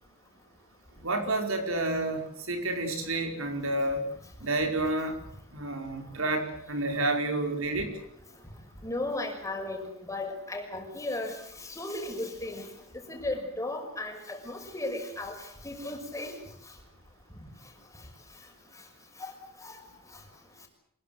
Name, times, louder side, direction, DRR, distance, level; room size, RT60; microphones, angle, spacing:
voice 1, 1.0-4.1 4.4-5.1 5.5-7.9, right 2 dB, 70° right, 5 dB, 5.0 m, -29 dB
voice 2, 8.8-11.4 11.7-12.7 13.1-15.3 15.6-16.3 19.2-19.3 19.6-19.8, left 2 dB, 15° left, 3 dB, 6.1 m, -35 dB
25.5 x 22.0 x 8.0 m, 0.72 s
head